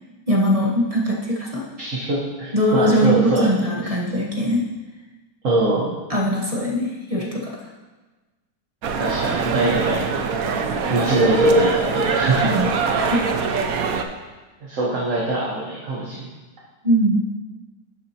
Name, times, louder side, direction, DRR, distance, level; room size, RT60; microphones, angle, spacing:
voice 1, 0.3-1.6 2.5-4.6 6.1-7.5 12.4-13.2 16.8-17.2, equal, 25° right, -2 dB, 0.9 m, -21 dB
voice 2, 1.8-3.5 3.8-3.9 5.4-5.9 9.0-10.6 10.9-12.5 14.6-16.3, right 2 dB, 50° right, -5 dB, 1.6 m, -23 dB
sound 1, 8.8-14.0, right 4 dB, 65° right, 1.0 m, -22 dB
11.5 x 7.4 x 2.9 m, 1.2 s
omnidirectional pair, 1.9 m